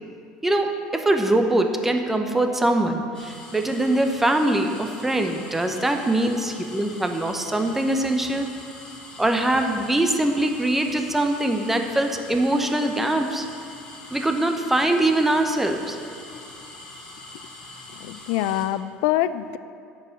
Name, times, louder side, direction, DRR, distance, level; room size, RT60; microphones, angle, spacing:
voice 1, 0.4-8.5 9.2-13.5 14.1-16.0, right 1 dB, 10° right, 4 dB, 0.9 m, -22 dB
sound 1, 3.1-18.7, left 2 dB, 30° left, 2.4 m, -43 dB
voice 2, 17.9-19.6, left 13 dB, 80° left, 14 dB, 0.4 m, -25 dB
11.0 x 4.8 x 7.8 m, 2.3 s
supercardioid pair, 120°, 3 cm